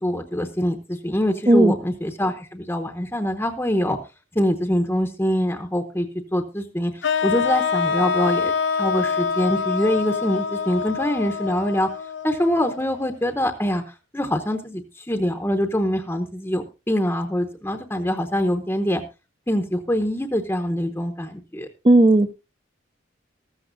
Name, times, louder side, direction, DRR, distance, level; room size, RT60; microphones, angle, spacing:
voice 1, 0.0-4.0 4.3-6.9 7.2-11.9 12.2-19.0 19.5-21.7, equal, 10° left, 6 dB, 0.8 m, -24 dB
sound 1, 7.0-13.1, left 6 dB, 65° left, 0.7 m, -25 dB
voice 2, 21.8-22.3, right 1 dB, 25° right, 8 dB, 0.5 m, -14 dB
14.5 x 14.0 x 2.6 m, 0.28 s
head